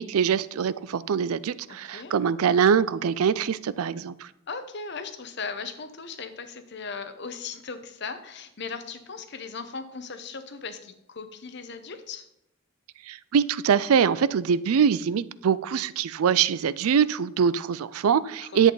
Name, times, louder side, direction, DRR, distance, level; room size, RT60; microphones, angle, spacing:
voice 1, 0.0-4.3 13.1-18.7, right 7 dB, 90° right, 17 dB, 0.4 m, -23 dB
voice 2, 1.7-2.1 4.5-12.3 18.4-18.7, left 5 dB, 55° left, 10 dB, 0.9 m, -38 dB
10.5 x 8.2 x 3.9 m, 0.83 s
head